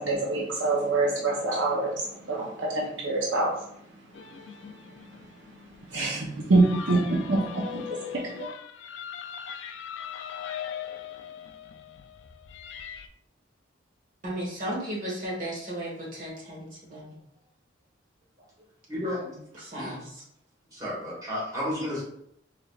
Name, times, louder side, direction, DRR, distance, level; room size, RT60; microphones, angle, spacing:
voice 1, 0.0-5.2 5.5-8.5, right 2 dB, 75° right, -3 dB, 0.7 m, -27 dB
sound 1, 4.1-13.1, left 8 dB, 70° left, 0.3 m, -40 dB
voice 2, 14.2-17.1 19.6-20.1, right 1 dB, 45° right, -5 dB, 1.3 m, -35 dB
voice 3, 18.9-19.4 19.7-19.9 20.7-22.0, left 1 dB, 20° right, -7 dB, 1.4 m, -32 dB
3.8 x 3.2 x 2.4 m, 0.73 s
head